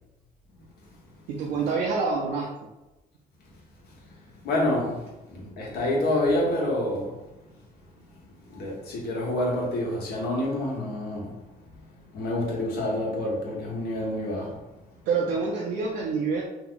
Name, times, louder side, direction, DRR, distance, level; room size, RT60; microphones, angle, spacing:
voice 1, 1.3-2.5 15.1-16.4, right 4 dB, 80° right, 0.6 m, -26 dB
voice 2, 3.8-7.2 8.1-8.2 8.5-11.4 11.9-14.6, left 1 dB, 70° left, 1.2 m, -28 dB
2.8 x 2.2 x 3.9 m
cardioid pair, 110°, 17 cm